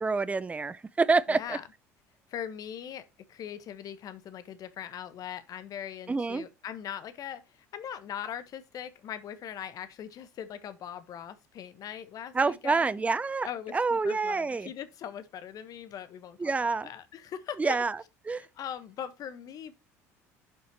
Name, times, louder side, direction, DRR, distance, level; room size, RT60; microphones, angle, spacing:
voice 1, 0.0-1.6 6.1-6.5 12.3-13.5 13.7-14.7 16.4-16.9 17.6-18.0 18.3-18.5, right 4 dB, 15° right, 0.6 m, -27 dB
voice 2, 1.3-1.6 2.3-12.9 13.4-17.8 18.4-19.7, left 9 dB, 50° left, 1.3 m, -41 dB
10.5 x 5.7 x 3.0 m
hypercardioid pair, 65°, 8 cm